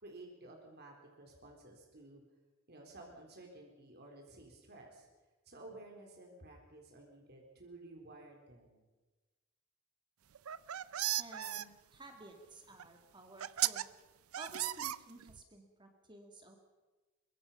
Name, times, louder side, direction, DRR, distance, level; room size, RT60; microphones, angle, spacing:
voice 1, 0.0-2.2 2.7-5.1 5.5-8.8, right 2 dB, 50° right, 1 dB, 3.8 m, -54 dB
sound 1, 10.3-11.6 12.8-12.9 13.4-13.8 14.3-15.4, right 13 dB, 90° right, 0.6 m, -35 dB
voice 2, 11.2-13.9 14.4-16.6, right 2 dB, 20° right, 4 dB, 2.1 m, -54 dB
23.5 x 22.0 x 5.6 m, 1.2 s
head